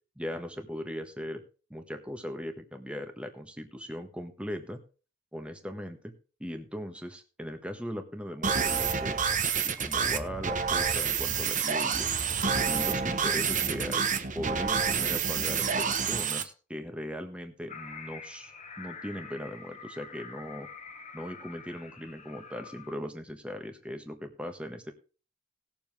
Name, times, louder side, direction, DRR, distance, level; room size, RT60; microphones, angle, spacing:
voice 1, 0.2-1.4 1.7-4.8 5.3-6.1 6.4-9.2 9.6-12.2 12.6-14.0 14.3-18.5 18.8-20.7 21.1-24.9, equal, 5° right, 6 dB, 1.4 m, -39 dB
sound 1, 8.4-16.4, right 6 dB, 40° right, 1.1 m, -28 dB
sound 2, 17.7-23.0, left 5 dB, 35° left, 1.3 m, -46 dB
19.0 x 7.1 x 3.6 m, 0.35 s
head